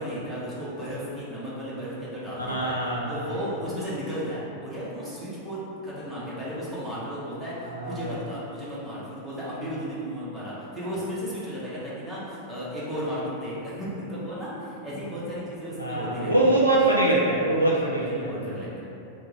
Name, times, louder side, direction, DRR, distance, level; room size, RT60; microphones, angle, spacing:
voice 1, 0.0-16.5 18.0-18.8, equal, ahead, -11 dB, 1.0 m, -34 dB
voice 2, 2.5-3.3 7.6-8.2 15.8-18.6, right 2 dB, 90° left, -4 dB, 0.3 m, -24 dB
2.9 x 2.3 x 3.8 m, 2.8 s
figure-of-eight pair, 90°, 0 cm